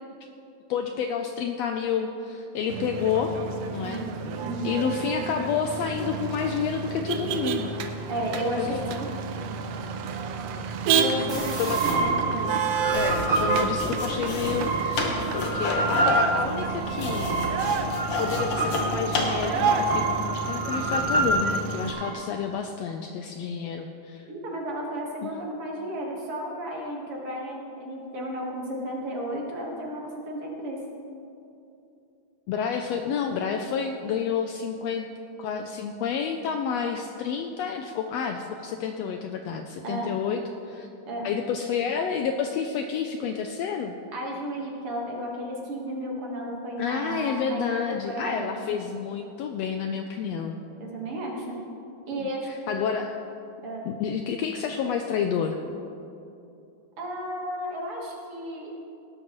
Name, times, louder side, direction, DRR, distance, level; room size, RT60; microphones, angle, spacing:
voice 1, 0.7-3.3 3.7-4.0 4.6-7.7 8.6-8.7 11.6-11.8 12.9-15.0 15.3-17.3 18.2-24.2 25.2-25.3 32.5-35.1 35.4-40.4 40.7-40.9 41.2-43.9 46.8-50.6 52.2-53.1 53.8-55.6, left 7 dB, 80° left, 5 dB, 1.5 m, -29 dB
Motor vehicle (road), 2.7-21.9, right 5 dB, 75° right, 1.7 m, -30 dB
voice 2, 3.8-4.7 8.1-9.1 10.9-12.6 24.3-30.8 39.8-40.1 41.1-41.3 44.1-48.6 50.8-51.6 52.1-52.5 53.6-53.8 57.0-58.7, right 1 dB, 55° right, -2 dB, 2.3 m, -33 dB
sound 1, 11.3-22.1, right 2 dB, 15° right, 2.8 m, -28 dB
sound 2, 12.8-19.9, left 2 dB, 55° left, 2.1 m, -30 dB
18.5 x 11.5 x 3.1 m, 2.7 s
omnidirectional pair, 3.4 m